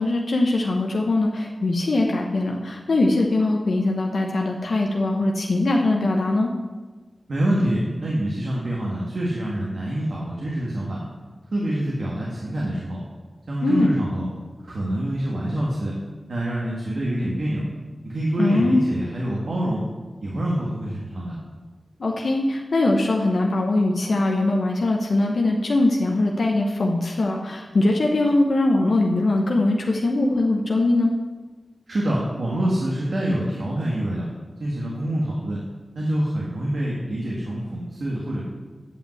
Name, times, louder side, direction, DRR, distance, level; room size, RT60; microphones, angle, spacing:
voice 1, 0.0-6.5 13.6-13.9 18.4-18.8 22.0-31.1, left 2 dB, 85° left, 0 dB, 0.9 m, -21 dB
voice 2, 7.3-11.0 11.5-13.0 13.5-14.3 14.6-15.9 16.3-17.6 18.0-19.8 20.2-21.4 31.9-34.3 34.6-35.6 35.9-38.4, right 1 dB, 85° right, -4 dB, 1.6 m, -26 dB
9.0 x 5.5 x 7.7 m, 1.3 s
wide cardioid pair, 60°, 0 cm